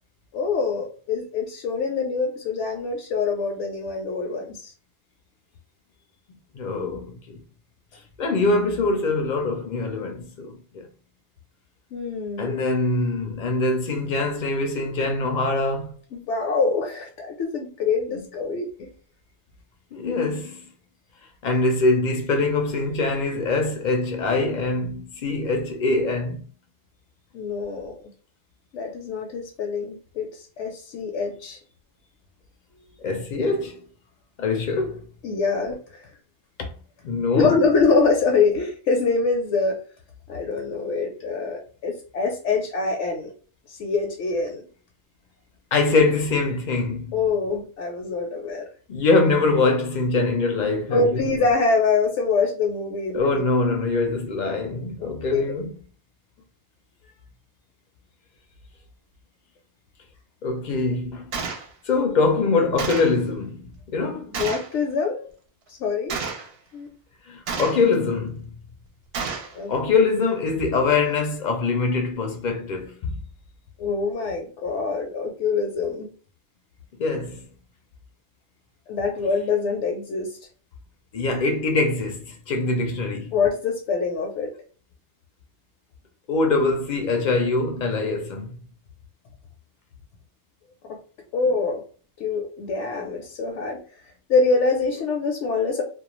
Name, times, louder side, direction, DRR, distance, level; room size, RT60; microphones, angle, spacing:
voice 1, 0.3-4.7 11.9-12.5 16.1-18.9 27.3-27.9 28.7-31.6 35.2-36.1 37.3-39.8 40.3-43.3 43.7-44.7 47.1-48.7 50.9-53.4 55.0-55.4 64.3-65.3 65.7-66.2 66.7-66.9 69.5-69.7 73.8-76.1 78.9-80.4 83.3-84.5 90.9-91.0 91.3-91.8 92.2-93.8 94.3-95.8, left 4 dB, 80° left, 0.9 m, -24 dB
voice 2, 6.5-7.4 8.2-10.9 12.4-16.0 18.1-18.2 19.9-20.6 21.4-26.4 33.0-33.8 34.4-35.1 36.6-36.7 37.0-37.6 45.7-47.2 48.9-51.3 53.1-55.7 60.4-61.3 61.8-64.3 67.3-68.6 69.7-73.1 77.0-77.5 81.1-83.4 86.3-88.6, left 3 dB, 60° left, 0.5 m, -23 dB
Gunshot gunfire, 61.3-61.7 62.8-63.2 64.3-64.7 66.1-66.5 67.5-67.9 69.1-69.5, right 5 dB, 65° right, 0.8 m, -30 dB
2.3 x 2.1 x 2.9 m
omnidirectional pair, 1.2 m